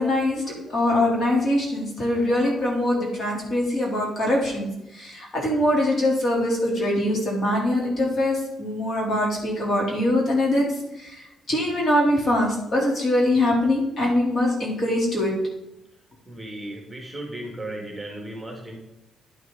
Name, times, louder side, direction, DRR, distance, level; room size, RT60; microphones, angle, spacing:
voice 1, 0.0-4.7 4.9-10.6 11.0-15.3, left 1 dB, 40° left, -2 dB, 3.5 m, -23 dB
voice 2, 16.3-18.8, right 1 dB, 10° right, 1 dB, 2.1 m, -35 dB
11.0 x 6.3 x 4.0 m, 0.88 s
cardioid pair, 90°, 0 cm